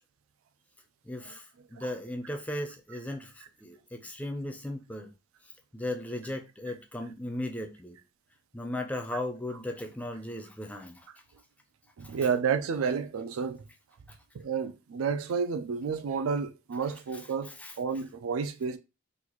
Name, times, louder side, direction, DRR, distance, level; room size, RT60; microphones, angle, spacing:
voice 1, 1.0-5.1 5.7-8.0 8.5-11.1 12.0-12.2 17.1-17.2 17.5-17.8, left 1 dB, 5° left, 0.4 m, -37 dB
voice 2, 12.0-13.6 14.3-17.5 17.8-18.8, right 6 dB, 70° right, 0.4 m, -30 dB
3.9 x 2.4 x 3.0 m
head